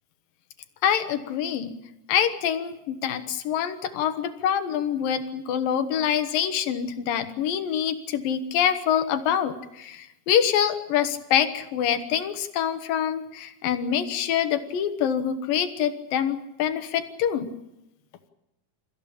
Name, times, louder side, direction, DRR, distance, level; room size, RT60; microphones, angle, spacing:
voice 1, 0.8-1.8 2.1-17.5, left 9 dB, 90° left, 9 dB, 3.1 m, -25 dB
29.0 x 15.0 x 8.7 m, 0.91 s
omnidirectional pair, 3.9 m